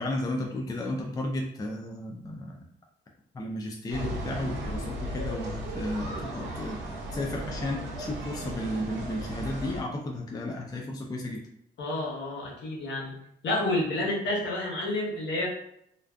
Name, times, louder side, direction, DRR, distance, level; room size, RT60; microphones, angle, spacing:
voice 1, 0.0-2.6 3.3-6.8 7.1-11.4, left 1 dB, 20° left, 0 dB, 0.4 m, -33 dB
sound 1, 3.9-9.8, right 1 dB, 70° right, 0.7 m, -35 dB
voice 2, 11.8-13.1 13.4-15.5, left 1 dB, 65° left, -3 dB, 1.0 m, -29 dB
2.5 x 2.3 x 2.2 m, 0.74 s
cardioid pair, 90°, 20 cm